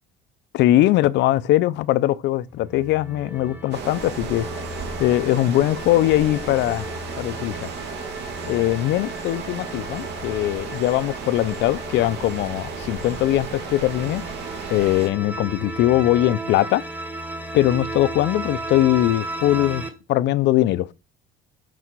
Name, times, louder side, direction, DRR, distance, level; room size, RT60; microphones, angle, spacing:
voice 1, 0.5-4.5 5.0-6.8 7.2-7.7 8.5-14.2 14.7-16.8 17.5-20.9, left 14 dB, 65° left, 0.6 m, -21 dB
sound 1, 2.5-19.9, right 1 dB, 10° right, 1.6 m, -35 dB
sound 2, 3.7-15.1, right 6 dB, 60° right, 2.3 m, -34 dB
8.2 x 4.2 x 6.2 m
cardioid pair, 135°, 20 cm